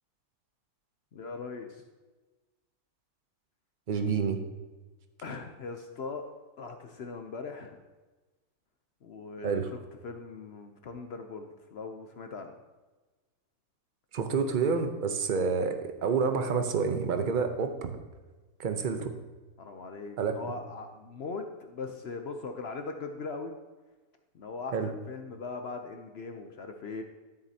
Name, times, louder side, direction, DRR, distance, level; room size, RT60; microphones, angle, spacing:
voice 1, 1.1-1.8 5.2-6.2 6.6-7.8 9.0-12.6 19.6-23.5 24.3-27.0, left 4 dB, 60° left, 5 dB, 0.7 m, -40 dB
voice 2, 3.9-4.4 9.4-9.7 14.1-17.9 18.6-19.1 20.2-20.4 24.7-24.9, right 5 dB, 45° right, 7 dB, 0.7 m, -28 dB
12.5 x 7.3 x 2.8 m, 1.2 s
omnidirectional pair, 1.6 m